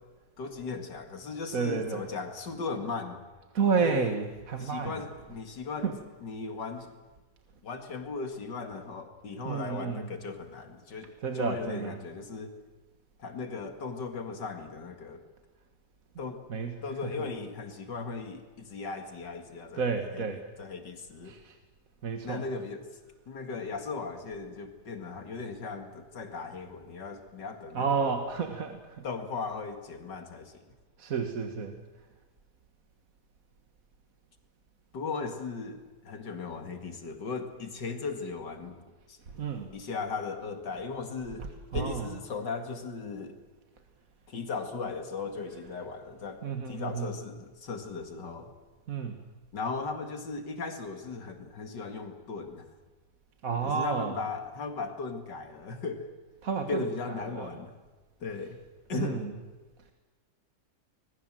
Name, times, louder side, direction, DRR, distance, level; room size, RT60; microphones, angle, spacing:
voice 1, 0.4-3.2 3.8-4.2 4.6-6.9 7.6-12.6 13.2-15.2 16.2-16.4 16.8-21.3 22.2-22.9 23.3-28.2 29.0-30.6 34.9-38.8 39.1-39.2 39.7-41.5 41.7-43.4 44.3-48.5 49.5-52.7 53.6-56.1 56.7-57.7 58.2-58.6 58.9-59.3, left 4 dB, 85° left, 6 dB, 2.7 m, -37 dB
voice 2, 1.5-2.0 3.5-4.9 5.8-5.9 9.4-10.1 11.2-12.0 16.5-17.1 19.8-20.4 21.3-21.5 22.0-22.4 27.7-29.0 31.0-31.8 39.3-39.7 41.7-42.1 46.4-47.1 48.9-49.2 53.4-54.1 56.4-56.8 57.3-57.5 58.9-59.3, right 5 dB, 55° right, 5 dB, 1.9 m, -30 dB
26.0 x 20.5 x 7.6 m, 1.2 s
omnidirectional pair, 1.8 m